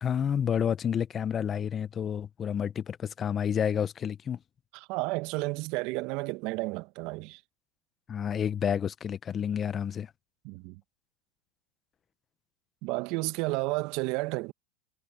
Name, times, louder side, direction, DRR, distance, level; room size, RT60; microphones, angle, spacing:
voice 1, 0.0-4.4 8.1-10.1, left 8 dB, 30° left, 0.9 m, -30 dB
voice 2, 4.7-7.4 10.4-10.8 12.8-14.5, right 23 dB, 55° right, 1.4 m, -32 dB
hypercardioid pair, 110°, 0 cm